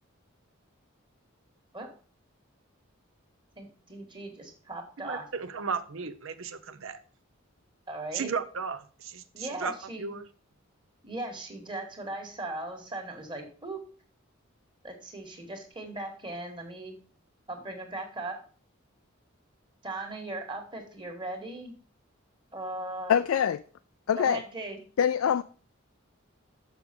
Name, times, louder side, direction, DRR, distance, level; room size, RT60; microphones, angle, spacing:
voice 1, 3.6-5.3 7.9-8.3 9.3-10.1 11.0-13.8 14.8-17.0 17.5-18.4 19.8-21.7 22.5-23.1 24.2-24.8, right 2 dB, 25° right, 1.6 m, -38 dB
voice 2, 5.0-7.0 8.1-10.3, right 5 dB, 75° right, 0.7 m, -35 dB
voice 3, 23.1-23.6 24.1-24.4 25.0-25.4, left 8 dB, 85° left, 0.4 m, -24 dB
6.6 x 6.4 x 5.2 m
head